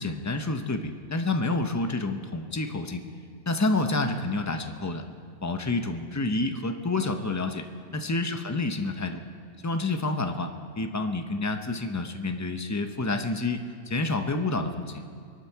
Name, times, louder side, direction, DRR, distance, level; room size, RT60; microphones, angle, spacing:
voice 1, 0.0-3.0 3.5-5.0 5.4-7.6 7.9-9.2 9.6-15.0, left 2 dB, 25° left, 6 dB, 0.3 m, -28 dB
24.5 x 11.5 x 4.6 m, 2.1 s
omnidirectional pair, 1.6 m